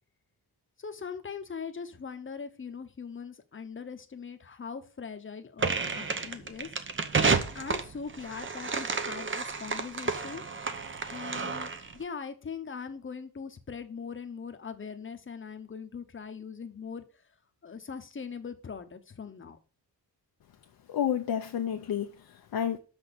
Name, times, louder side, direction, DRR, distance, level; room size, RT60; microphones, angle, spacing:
voice 1, 0.8-6.7 7.2-10.4 11.1-17.0 17.6-19.6, left 6 dB, 30° left, 1.0 m, -41 dB
sound 1, 5.6-11.9, right 4 dB, 30° right, 0.8 m, -31 dB
voice 2, 20.9-22.8, left 9 dB, 60° left, 0.8 m, -30 dB
6.2 x 6.2 x 6.8 m
wide cardioid pair, 155°, 42 cm